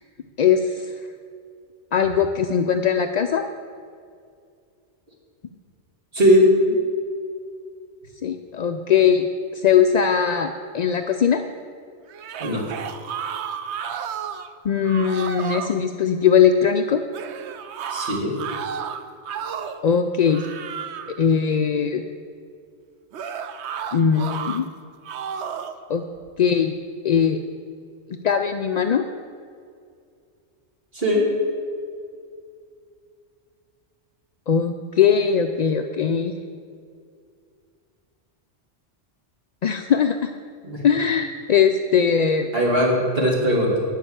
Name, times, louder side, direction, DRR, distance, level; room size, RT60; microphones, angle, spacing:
voice 1, 0.4-0.8 1.9-3.4 8.2-9.3 9.5-11.4 14.6-17.0 19.8-20.5 21.1-22.0 23.9-24.7 25.9-26.0 26.4-26.8 27.0-27.4 28.2-29.0 34.5-36.3 39.6-40.3 40.8-42.5, left 7 dB, 60° left, 6 dB, 0.4 m, -20 dB
voice 2, 6.1-6.8 12.4-12.6 17.9-18.4 30.9-31.3 40.6-40.8 42.5-43.8, equal, 55° right, -3 dB, 2.7 m, -19 dB
sound 1, 12.1-14.5 14.8-15.8 17.1-19.9 20.3-21.2 23.1-24.6 25.0-25.8, right 7 dB, 75° right, 0.9 m, -32 dB
12.5 x 5.5 x 8.6 m, 2.3 s
omnidirectional pair, 1.2 m